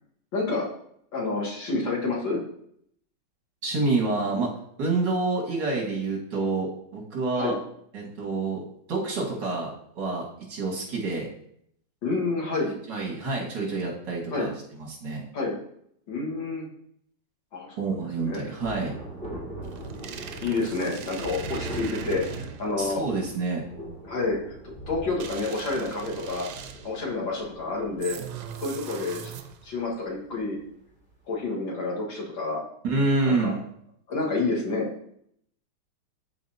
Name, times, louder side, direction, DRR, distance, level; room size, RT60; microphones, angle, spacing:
voice 1, 0.3-0.7 1.1-2.4 7.4-7.6 12.0-12.7 14.3-14.5 15.3-15.5 16.1-16.7 17.5-17.9 18.2-18.4 20.4-23.0 24.0-24.4 24.9-26.5 26.8-28.2 28.6-29.3 29.6-30.6 31.3-32.6 33.3-33.5 34.1-34.9, left 3 dB, 85° left, -3 dB, 2.4 m, -29 dB
voice 2, 3.6-4.5 4.8-7.5 7.9-8.6 8.9-9.7 10.0-11.3 12.6-14.5 14.8-15.2 17.8-18.9 22.8-23.6 32.8-33.6, right 3 dB, 70° right, -2 dB, 2.5 m, -27 dB
Thunder, 18.6-30.6 30.9-31.0, right 2 dB, 5° left, 2.3 m, -40 dB
sound 1, 19.6-22.8 25.2-27.0 28.0-29.8, right 8 dB, 85° right, 1.4 m, -40 dB
12.5 x 4.3 x 2.8 m, 0.69 s
omnidirectional pair, 2.0 m